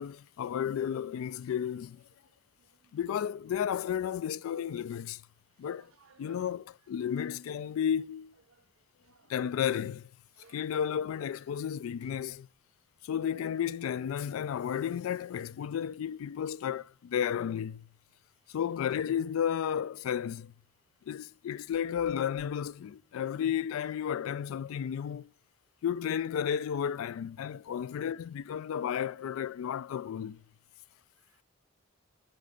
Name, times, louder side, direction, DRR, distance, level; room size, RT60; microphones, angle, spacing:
voice 1, 0.0-2.0 2.9-5.2 5.6-5.9 6.2-8.3 9.3-10.1 10.5-12.5 13.0-17.9 18.5-20.5 21.1-25.3 25.8-30.4, left 8 dB, 80° left, 0.3 m, -33 dB
voice 2, 2.3-3.0 5.8-6.6 7.0-7.3 8.5-8.6 9.0-9.3 10.3-10.7 18.5-18.6 31.2-31.4, right 6 dB, 85° right, 0.6 m, -62 dB
sound 1, 6.1-6.2 7.9-8.0 8.4-8.5 8.8-9.4 9.9-10.0 10.6-10.7 11.1-11.4 11.8-12.9 15.0-15.7 18.4-19.5 19.9-20.1 21.4-22.7, equal, 40° left, 3.2 m, -65 dB
6.7 x 6.6 x 4.9 m
head